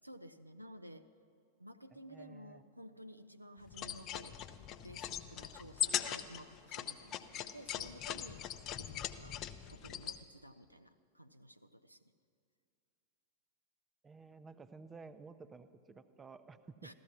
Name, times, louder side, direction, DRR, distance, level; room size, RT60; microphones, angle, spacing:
voice 1, 0.0-1.1 1.6-8.4 8.8-9.4 9.7-12.0 16.8-16.9, equal, 90° right, 9 dB, 0.5 m, -53 dB
voice 2, 1.9-2.6 14.0-16.9, right 4 dB, 20° right, 12 dB, 0.6 m, -54 dB
sound 1, 3.7-10.2, left 10 dB, 35° left, 0.6 m, -40 dB
14.5 x 13.5 x 6.0 m, 2.4 s
figure-of-eight pair, 90°, 0 cm